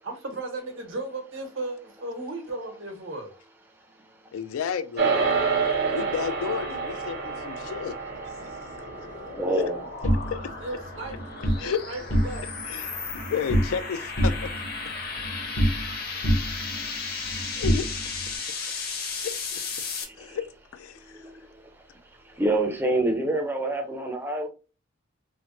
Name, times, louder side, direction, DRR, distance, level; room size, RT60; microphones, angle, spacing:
voice 1, 0.0-3.3 10.6-12.4, right 2 dB, 70° right, 1.0 m, -35 dB
voice 2, 4.3-5.3 5.9-8.0 8.3-8.4 9.6-9.7 10.3-10.4 11.4-11.8 12.4-14.5 14.8-14.9 17.6-17.9 19.2-19.6 20.2-20.4 20.7-21.3, left 7 dB, 90° left, 0.3 m, -32 dB
sound 1, 5.0-14.5, right 4 dB, 50° right, 0.8 m, -30 dB
sound 2, 8.1-20.0, left 4 dB, 45° left, 0.7 m, -35 dB
voice 3, 9.3-9.8 13.0-13.1 19.8-20.4 21.0-21.8 22.2-24.5, right 1 dB, 10° right, 0.5 m, -28 dB
sound 3, 10.0-11.6 12.0-12.7 12.9-13.9 14.2-16.0 16.2-18.3, equal, 70° left, 0.9 m, -27 dB
3.2 x 2.0 x 2.7 m
head